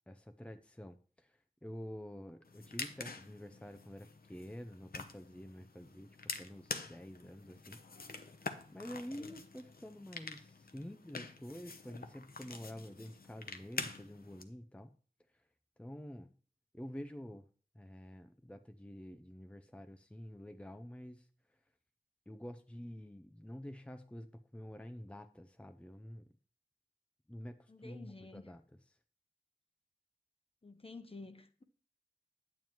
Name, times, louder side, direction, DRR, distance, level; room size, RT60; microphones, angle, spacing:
voice 1, 0.1-7.8 8.7-14.9 15.8-16.3 16.7-17.5 17.7-21.3 22.3-26.3 27.3-28.6, equal, 10° left, 0.6 m, -48 dB
sound 1, 2.4-14.4, left 4 dB, 80° left, 0.8 m, -46 dB
voice 2, 27.7-28.5 30.6-31.6, left 3 dB, 40° left, 0.8 m, -51 dB
9.1 x 8.8 x 3.0 m
wide cardioid pair, 60°, 15 cm